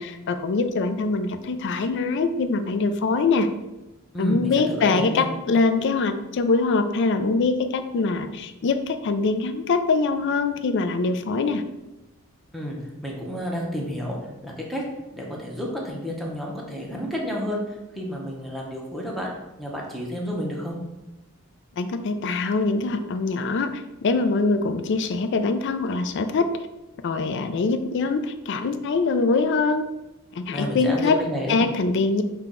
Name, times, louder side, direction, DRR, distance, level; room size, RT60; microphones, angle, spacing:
voice 1, 0.0-3.5 4.2-11.6 21.8-26.5 27.0-29.9 30.3-31.2 31.5-32.2, left 3 dB, 55° left, 9 dB, 0.4 m, -23 dB
voice 2, 4.1-5.2 12.5-12.8 13.0-14.2 14.4-14.8 15.1-19.3 19.6-20.8 30.5-31.6, equal, ahead, -3 dB, 0.7 m, -30 dB
5.7 x 2.3 x 3.6 m, 1.0 s
head